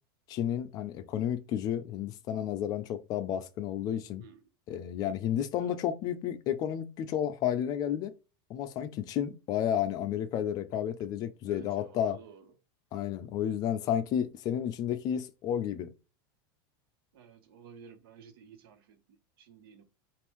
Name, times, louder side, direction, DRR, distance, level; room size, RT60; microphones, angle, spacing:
voice 1, 0.3-4.2 4.7-8.1 8.5-12.2 12.9-15.9, left 10 dB, 30° left, 0.4 m, -31 dB
voice 2, 11.4-12.5 17.1-19.8, right 6 dB, 75° right, 1.1 m, -54 dB
5.2 x 2.5 x 3.0 m
supercardioid pair, 160°, 12 cm